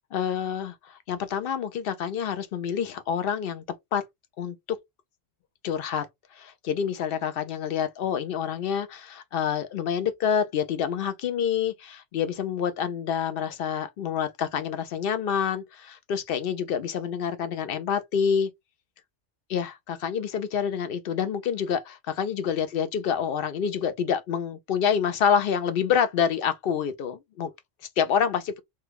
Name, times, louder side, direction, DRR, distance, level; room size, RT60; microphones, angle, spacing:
voice 1, 0.1-3.6 3.9-4.0 4.4-4.8 5.6-6.1 6.3-18.5 19.5-27.5 28.0-28.6, left 7 dB, 60° left, 0.6 m, -27 dB
3.1 x 2.2 x 3.3 m
omnidirectional pair, 1.3 m